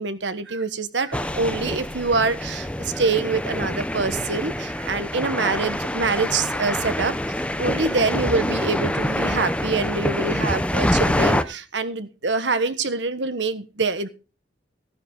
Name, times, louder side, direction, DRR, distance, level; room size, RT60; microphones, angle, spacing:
voice 1, 0.0-7.1 7.6-14.1, right 3 dB, 75° right, 11 dB, 1.3 m, -25 dB
sound 1, 1.1-11.4, left 1 dB, 5° left, 0.6 m, -26 dB
15.5 x 9.6 x 3.9 m, 0.33 s
head